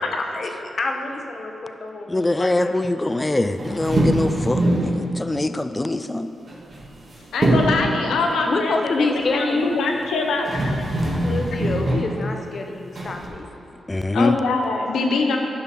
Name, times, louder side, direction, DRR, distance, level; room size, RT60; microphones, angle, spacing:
voice 1, 0.8-2.9 8.5-9.8 11.2-13.5, left 3 dB, 55° left, 3 dB, 0.8 m, -27 dB
voice 2, 2.1-6.3 13.9-14.4, left 2 dB, 20° left, 10 dB, 0.4 m, -23 dB
sound 1, 3.6-5.0 6.5-7.1 7.4-7.9 10.0-10.1 10.4-12.1 13.0-13.3, right 1 dB, 55° right, 1.8 m, -22 dB
voice 3, 7.3-10.6 14.1-15.4, left 3 dB, 85° left, 2 dB, 0.8 m, -23 dB
10.5 x 5.7 x 4.2 m, 2.9 s
cardioid pair, 55°, 0 cm